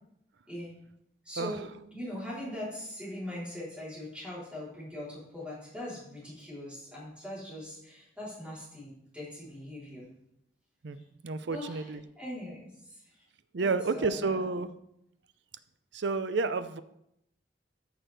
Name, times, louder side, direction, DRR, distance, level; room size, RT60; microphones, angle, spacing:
voice 1, 1.2-1.7 1.9-10.1 10.9-11.2 11.5-13.2 13.6-14.6, left 1 dB, 5° right, -8 dB, 3.5 m, -41 dB
voice 2, 11.2-12.0 13.5-14.7 15.9-16.8, right 4 dB, 70° right, 12 dB, 0.6 m, -30 dB
13.5 x 6.0 x 3.3 m, 0.78 s
head